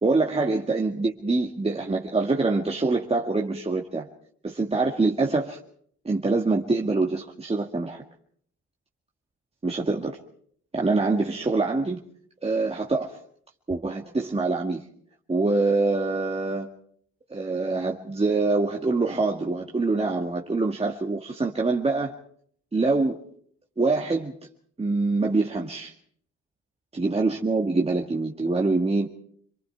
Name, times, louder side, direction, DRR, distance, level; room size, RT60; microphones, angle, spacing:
voice 1, 0.0-4.1 4.4-5.6 6.0-8.0 9.6-10.2 10.7-12.0 12.4-13.2 13.7-14.8 15.3-16.7 17.3-22.1 22.7-23.2 23.8-24.3 24.8-25.9 26.9-29.1, right 3 dB, 20° right, 0 dB, 2.0 m, -25 dB
27.5 x 23.0 x 4.8 m, 0.62 s
cardioid pair, 90°, 30 cm